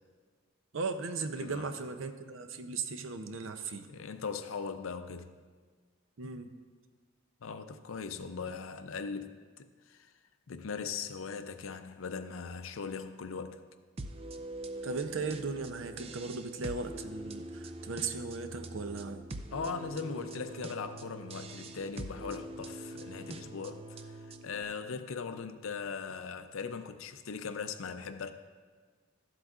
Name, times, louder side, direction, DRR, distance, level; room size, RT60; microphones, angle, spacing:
voice 1, 0.7-3.9 6.2-6.5 14.8-19.3, right 4 dB, 70° right, 0.6 m, -37 dB
voice 2, 1.4-1.7 3.9-5.4 7.4-10.1 10.5-13.6 19.5-28.3, left 5 dB, 75° left, 0.5 m, -39 dB
sound 1, 14.0-24.6, right 2 dB, 30° right, 0.3 m, -44 dB
13.5 x 7.9 x 2.4 m
head